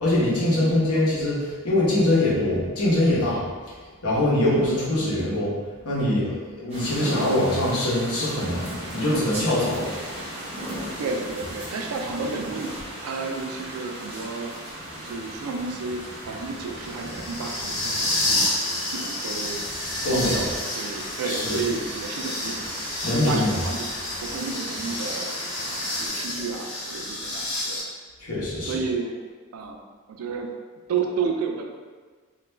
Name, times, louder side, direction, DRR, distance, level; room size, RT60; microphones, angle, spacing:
voice 1, 0.0-3.4 4.0-5.5 5.8-6.3 6.6-10.0 20.0-20.5 21.2-21.6 23.0-23.6 28.2-28.8, left 1 dB, 85° left, -7 dB, 0.9 m, -23 dB
voice 2, 0.6-1.1 4.5-4.7 8.9-9.0 11.0-14.6 14.9-18.5 18.9-19.6 20.0-22.6 23.0-23.9 24.2-25.3 25.7-27.8 28.6-29.2 29.5-29.8 30.1-30.5 30.9-31.7, right 4 dB, 75° right, 3 dB, 0.4 m, -32 dB
sound 1, 6.7-26.1, equal, 30° right, 0.7 m, -37 dB
sound 2, 14.7-27.8, left 1 dB, 55° left, 0.8 m, -30 dB
2.4 x 2.2 x 3.1 m, 1.5 s
head